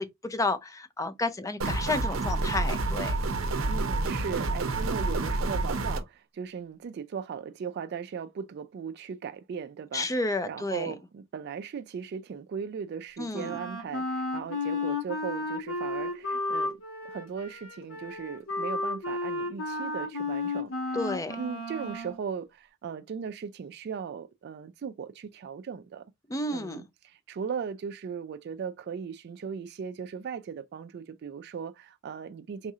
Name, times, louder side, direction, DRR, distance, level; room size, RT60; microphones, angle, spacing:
voice 1, 0.0-3.2 9.9-10.9 13.2-13.6 20.9-21.4 26.3-26.8, left 2 dB, 15° left, 0.4 m, -31 dB
sound 1, 1.6-6.0, right 2 dB, 85° right, 0.6 m, -28 dB
voice 2, 3.7-10.1 10.4-16.7 17.0-21.0 21.4-26.0 26.5-32.7, right 6 dB, 55° right, 0.3 m, -38 dB
Wind instrument woodwind instrument, 13.3-22.2, left 2 dB, 80° left, 1.2 m, -33 dB
4.0 x 2.4 x 2.7 m
head